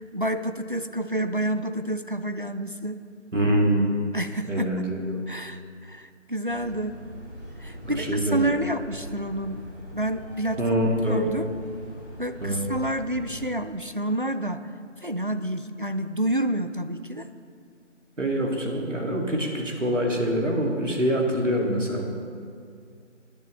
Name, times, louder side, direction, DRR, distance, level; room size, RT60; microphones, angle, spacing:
voice 1, 0.0-3.0 4.1-4.8 5.3-7.0 7.6-9.6 9.9-10.6 11.1-11.5 12.2-14.7 15.0-17.3, right 1 dB, 45° right, 9 dB, 0.4 m, -29 dB
voice 2, 3.3-4.0 4.5-5.2 7.8-8.4 10.6-11.3 12.4-12.7 18.2-22.0, equal, 80° right, 0 dB, 2.5 m, -25 dB
sound 1, 6.5-13.5, equal, 15° right, 2.3 m, -42 dB
19.0 x 10.5 x 3.3 m, 2.2 s
figure-of-eight pair, 175°, 37 cm